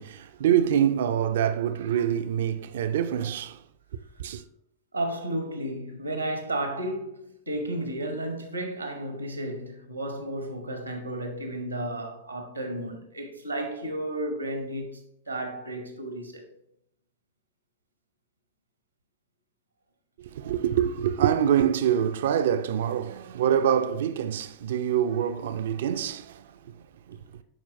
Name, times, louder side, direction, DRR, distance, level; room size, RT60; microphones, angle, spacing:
voice 1, 0.0-3.6 4.2-4.4 20.2-27.2, right 9 dB, 60° right, 0.4 m, -25 dB
voice 2, 4.9-15.0 15.3-16.5, right 1 dB, 85° right, 0.9 m, -33 dB
9.9 x 4.4 x 2.6 m
figure-of-eight pair, 90°, 0 cm